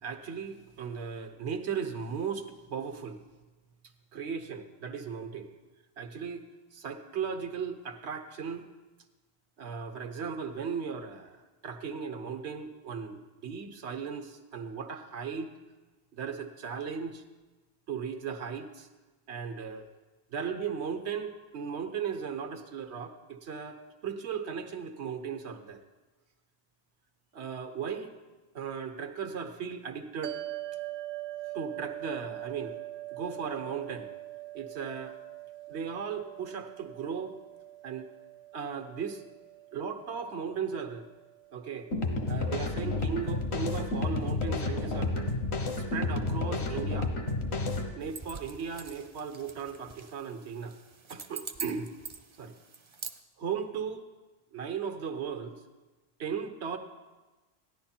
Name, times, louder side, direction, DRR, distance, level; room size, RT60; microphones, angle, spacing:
voice 1, 0.0-3.2 4.1-5.5 6.0-6.4 6.7-8.7 9.6-15.5 16.2-17.2 17.9-18.9 19.3-19.9 20.3-25.8 27.3-28.1 28.5-30.4 31.5-32.7 33.1-34.1 34.5-35.2 35.7-37.3 37.8-38.1 38.5-39.2 39.7-41.1 41.5-41.9 42.3-45.3 45.8-47.1 48.0-50.8 51.1-51.9 52.4-52.5 53.4-54.0 54.5-55.6 56.2-56.8, right 6 dB, 85° right, 6 dB, 1.3 m, -37 dB
sound 1, 30.2-42.7, right 16 dB, 60° right, 0.8 m, -43 dB
sound 2, 41.9-47.9, left 2 dB, 75° left, 1.4 m, -31 dB
sound 3, 48.0-53.2, right 5 dB, 35° right, 0.5 m, -44 dB
15.0 x 10.5 x 4.4 m, 1.2 s
omnidirectional pair, 1.1 m